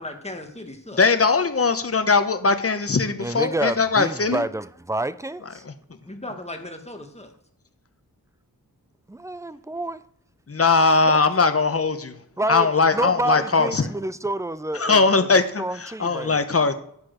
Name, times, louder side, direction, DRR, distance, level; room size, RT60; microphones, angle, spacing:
voice 1, 0.0-1.0 6.0-7.3, left 1 dB, 15° left, 1.4 m, -37 dB
voice 2, 1.0-4.4 10.5-12.1 12.5-13.9 14.8-16.7, left 4 dB, 40° left, 0.9 m, -20 dB
voice 3, 3.2-5.6 9.1-10.0 11.1-11.2 12.4-16.4, right 1 dB, 10° right, 0.4 m, -29 dB
9.7 x 4.4 x 6.3 m
wide cardioid pair, 70°, 36 cm